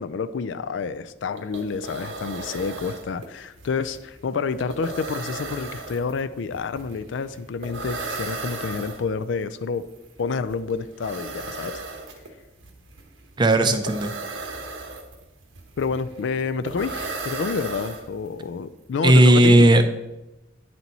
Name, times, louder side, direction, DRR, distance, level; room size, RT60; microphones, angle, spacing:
voice 1, 0.0-9.8 10.2-11.8 15.8-19.7, left 5 dB, 70° left, 13 dB, 0.4 m, -29 dB
sound 1, 1.1-1.2 1.4-18.5, right 3 dB, 85° right, 1.1 m, -36 dB
voice 2, 13.4-14.1 19.0-19.9, right 1 dB, 25° right, 8 dB, 0.5 m, -15 dB
9.3 x 4.4 x 4.0 m, 0.96 s
head